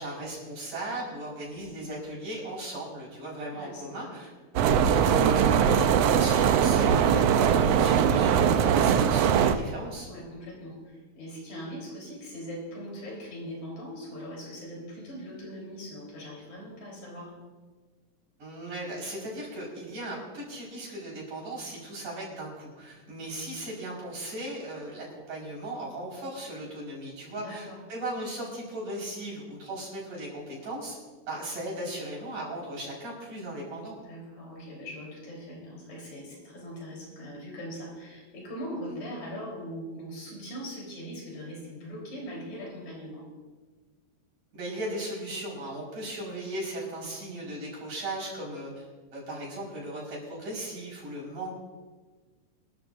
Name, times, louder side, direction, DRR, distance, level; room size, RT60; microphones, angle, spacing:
voice 1, 0.0-4.3 4.6-10.1 18.4-31.0 31.3-34.0 38.9-39.0 44.5-48.9 49.1-51.5, right 1 dB, 90° right, -4 dB, 6.3 m, -37 dB
voice 2, 3.5-4.2 10.1-17.3 27.3-27.8 34.0-43.3, equal, 75° left, -2 dB, 5.3 m, -41 dB
sound 1, 4.6-9.6, right 8 dB, 75° right, 1.6 m, -21 dB
25.0 x 12.5 x 2.6 m, 1.4 s
omnidirectional pair, 3.3 m